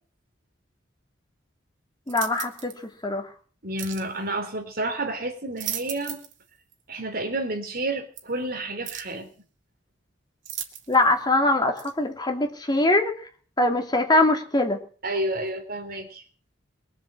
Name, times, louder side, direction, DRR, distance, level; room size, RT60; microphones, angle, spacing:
voice 1, 2.1-2.7 3.0-3.3 10.9-13.1 13.6-14.8, left 2 dB, 20° left, 4 dB, 2.7 m, -22 dB
sound 1, 2.1-2.8 3.8-4.1 5.3-6.4 6.7-6.8 8.2-8.3 8.8-9.2 10.4-11.1 11.8-11.9, right 10 dB, 75° right, 2.4 m, -36 dB
voice 2, 3.6-6.2 6.9-9.3 15.0-16.2, right 2 dB, 50° right, 6 dB, 3.5 m, -30 dB
22.5 x 7.6 x 7.7 m, 0.43 s
head